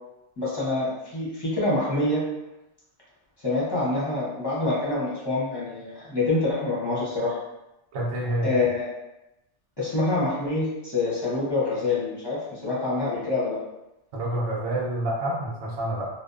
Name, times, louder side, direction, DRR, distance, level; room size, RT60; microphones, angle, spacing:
voice 1, 0.4-2.2 3.4-7.4 8.4-8.9 9.8-13.6, left 2 dB, 25° left, -8 dB, 0.6 m, -26 dB
voice 2, 7.9-8.5 14.1-16.1, right 1 dB, 70° right, -3 dB, 0.9 m, -28 dB
2.7 x 2.0 x 2.4 m, 0.91 s
omnidirectional pair, 1.2 m